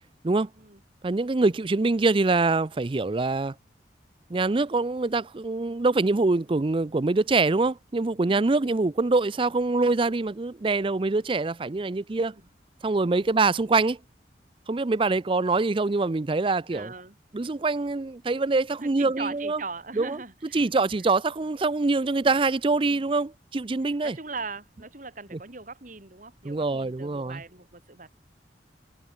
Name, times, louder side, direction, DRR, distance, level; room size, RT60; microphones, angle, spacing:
voice 1, 1.0-3.5 4.3-12.3 12.8-14.0 14.7-16.9 17.3-19.6 20.0-20.2 20.5-24.2 25.3-25.4 26.4-27.4, right 3 dB, 30° right, 0.5 m, -24 dB
voice 2, 8.3-8.8 13.2-13.4 16.7-17.2 18.8-20.7 22.3-22.4 22.8-23.0 23.9-28.2, right 4 dB, 45° right, 2.7 m, -40 dB
head